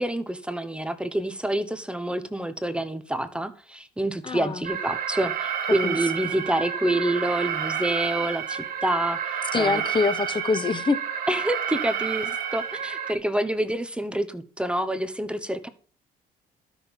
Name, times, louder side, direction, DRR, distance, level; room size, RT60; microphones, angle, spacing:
voice 1, 0.0-9.2 9.6-9.8 11.3-15.7, right 1 dB, 5° right, 0.9 m, -27 dB
voice 2, 4.2-4.6 5.8-6.0 9.5-11.0, left 4 dB, 30° left, 1.0 m, -24 dB
Alarm, 4.6-13.1, right 8 dB, 60° right, 1.4 m, -30 dB
12.5 x 6.2 x 5.3 m
cardioid pair, 110°, 17 cm